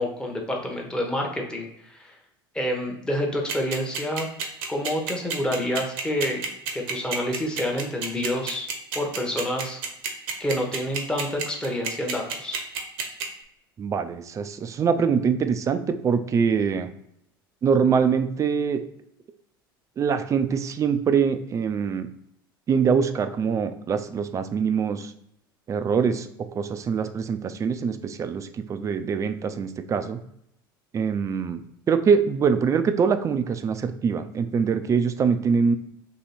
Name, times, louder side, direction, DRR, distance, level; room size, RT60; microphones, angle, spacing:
voice 1, 0.0-2.2 2.5-4.3 4.7-6.4 6.7-8.7 8.9-9.8 10.4-12.6, left 1 dB, 5° left, 0 dB, 0.9 m, -28 dB
sound 1, 3.5-13.2, right 6 dB, 60° right, 0.8 m, -29 dB
voice 2, 13.8-16.9 17.6-18.8 20.0-22.1 22.7-25.1 25.7-30.2 30.9-31.6 31.9-35.8, right 6 dB, 25° right, 10 dB, 0.4 m, -24 dB
3.0 x 2.9 x 4.1 m, 0.73 s
hypercardioid pair, 75°, 12 cm